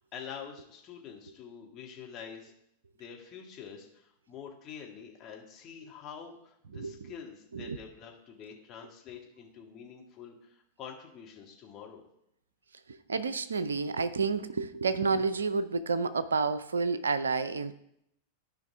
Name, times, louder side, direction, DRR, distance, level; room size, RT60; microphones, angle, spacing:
voice 1, 0.0-2.5 3.0-12.0, left 7 dB, 30° left, 0 dB, 1.9 m, -46 dB
voice 2, 6.7-7.1 7.5-7.8 12.9-17.7, right 4 dB, 70° right, 13 dB, 0.5 m, -30 dB
14.0 x 5.2 x 3.6 m, 0.77 s
figure-of-eight pair, 90°, 0 cm